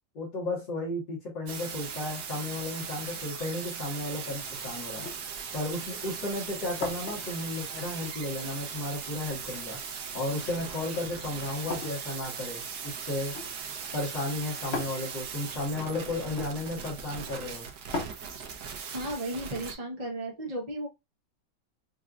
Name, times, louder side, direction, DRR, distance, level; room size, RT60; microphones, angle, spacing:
voice 1, 0.2-5.1 5.5-9.8 10.1-12.6 13.1-13.3 13.9-17.7, left 2 dB, 70° left, 2.3 m, -34 dB
sound 1, 1.5-19.7, right 6 dB, 65° right, 1.2 m, -39 dB
sound 2, 4.2-18.1, left 3 dB, 55° left, 0.7 m, -43 dB
voice 2, 18.9-20.9, right 1 dB, 35° right, 0.6 m, -34 dB
5.3 x 2.7 x 2.4 m
omnidirectional pair, 2.0 m